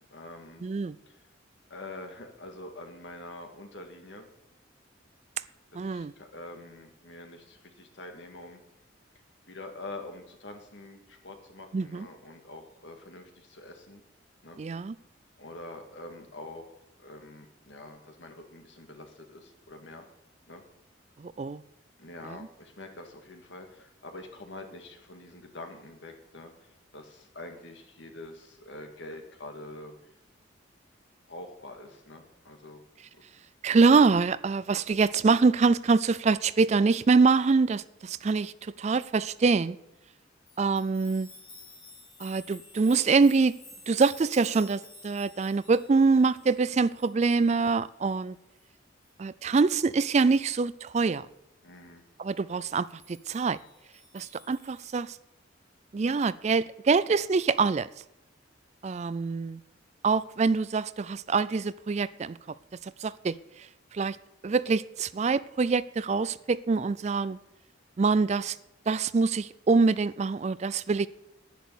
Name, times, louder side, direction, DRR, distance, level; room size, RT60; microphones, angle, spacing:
voice 1, 0.1-0.7 1.1-1.2 1.7-4.3 5.7-8.6 9.5-14.0 14.4-14.6 15.4-16.7 17.0-20.1 20.5-20.6 22.0-29.9 31.3-32.8 51.6-52.0, left 2 dB, 65° left, 2.0 m, -45 dB
voice 2, 0.6-0.9 5.7-6.1 11.7-12.1 14.6-14.9 21.2-21.6 33.6-39.8 40.6-41.3 42.2-43.5 43.9-48.4 49.2-51.3 52.2-53.6 54.1-55.2 55.9-57.9 58.8-59.6 60.0-62.4 63.0-63.4 63.9-64.2 64.4-67.4 68.0-68.6 68.9-71.1, right 4 dB, 35° right, 0.3 m, -25 dB
sound 1, 40.5-47.8 48.1-48.2 48.6-48.7 49.0-49.1 49.5-49.6 49.9-50.5 52.9-54.9, left 3 dB, 30° left, 5.8 m, -52 dB
10.5 x 10.5 x 6.9 m
head